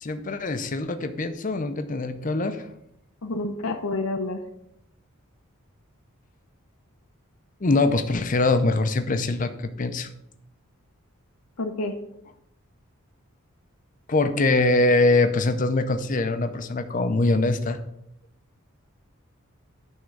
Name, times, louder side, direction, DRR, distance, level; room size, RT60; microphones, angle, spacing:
voice 1, 0.0-2.7 7.6-9.5 9.8-10.1 14.1-17.8, left 2 dB, 35° left, 9 dB, 0.6 m, -23 dB
voice 2, 3.2-4.4 11.6-11.9, left 2 dB, 75° left, 3 dB, 0.8 m, -28 dB
9.5 x 3.6 x 6.6 m, 0.77 s
head